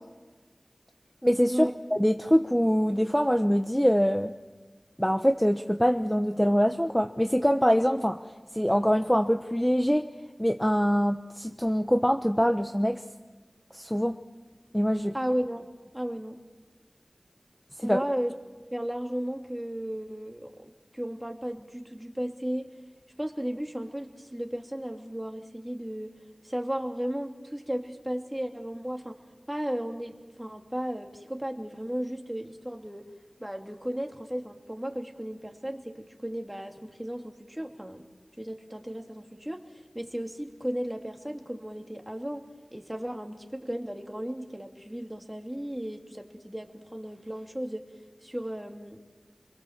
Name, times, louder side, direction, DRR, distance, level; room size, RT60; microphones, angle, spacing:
voice 1, 1.2-4.3 5.0-8.2 8.5-10.1 10.4-13.0 13.7-14.2 14.7-15.1 17.8-18.0, equal, 5° left, 6 dB, 1.1 m, -24 dB
voice 2, 15.1-15.7 15.9-16.4 17.8-18.3 18.7-22.7 23.2-26.1 26.4-29.2 29.5-33.1 33.4-38.1 38.4-39.6 39.9-42.4 42.7-47.8 48.2-49.0, equal, 15° right, 3 dB, 2.8 m, -34 dB
28.5 x 23.0 x 7.4 m, 1.3 s
wide cardioid pair, 45°, 0 cm